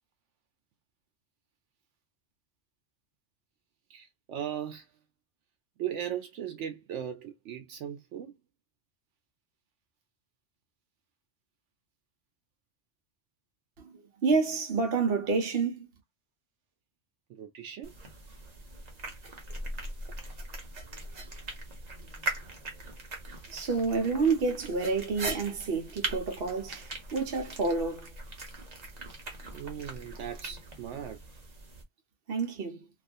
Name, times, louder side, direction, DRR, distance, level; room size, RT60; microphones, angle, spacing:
voice 1, 3.9-4.8 5.8-8.3 17.3-17.9 29.5-31.2, right 10 dB, 85° right, 0.9 m, -38 dB
voice 2, 13.8-15.9 23.5-28.1 29.1-29.2 32.3-32.9, right 4 dB, 60° right, 1.0 m, -29 dB
sound 1, 17.8-31.8, right 2 dB, 40° right, 0.9 m, -40 dB
2.6 x 2.3 x 2.5 m
omnidirectional pair, 1.2 m